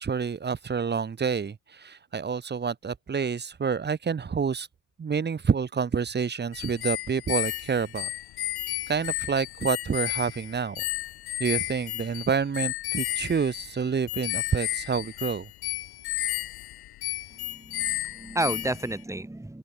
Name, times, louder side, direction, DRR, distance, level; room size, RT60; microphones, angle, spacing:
voice 1, 0.0-4.7 5.0-8.1 8.9-10.8 11.4-15.5, right 6 dB, 25° right, 1.3 m, -28 dB
sound 1, 6.5-19.0, left 15 dB, 65° left, 3.8 m, -33 dB
voice 2, 17.4-19.6, right 1 dB, 5° right, 3.1 m, -31 dB
open air
supercardioid pair, 95°, 40 cm